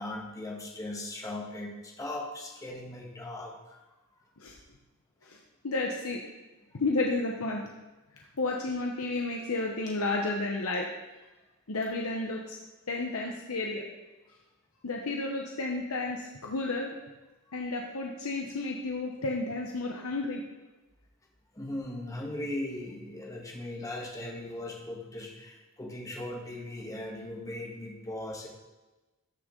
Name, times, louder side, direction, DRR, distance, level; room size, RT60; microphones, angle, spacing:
voice 1, 0.0-3.8 6.7-6.8 17.5-17.6 21.5-28.5, left 1 dB, 15° left, 0 dB, 1.4 m, -38 dB
voice 2, 5.6-6.2 6.7-7.7 8.1-10.9 11.7-12.6 12.9-13.8 14.8-16.9 17.5-20.4, left 2 dB, 75° left, 0 dB, 0.9 m, -32 dB
13.5 x 6.3 x 3.8 m, 1.1 s
head